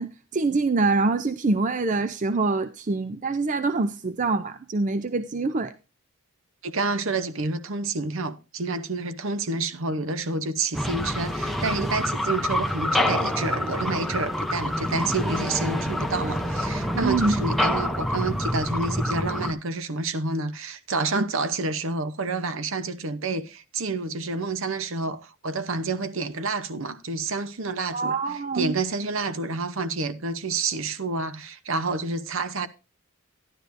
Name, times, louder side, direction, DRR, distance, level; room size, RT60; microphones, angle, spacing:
voice 1, 0.0-5.7 17.0-17.4 21.2-21.3 27.9-28.7, right 3 dB, 35° right, 0.5 m, -25 dB
voice 2, 6.6-28.1 28.5-32.7, right 3 dB, 60° right, 0.8 m, -29 dB
sound 1, 10.7-19.5, left 1 dB, ahead, 0.8 m, -27 dB
12.5 x 11.0 x 2.6 m
head